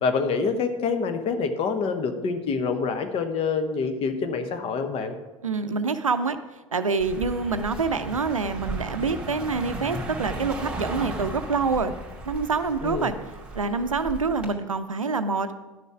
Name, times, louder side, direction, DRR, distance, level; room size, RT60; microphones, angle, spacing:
voice 1, 0.0-5.2 12.8-13.2, left 5 dB, 35° left, 8 dB, 1.1 m, -26 dB
voice 2, 5.4-6.4 6.7-11.9 12.3-13.1 13.5-15.5, right 4 dB, 80° right, 11 dB, 0.6 m, -26 dB
Car passing by, 7.0-14.5, right 2 dB, 5° right, 2.3 m, -36 dB
11.0 x 6.8 x 4.8 m, 1.1 s
figure-of-eight pair, 80°, 17 cm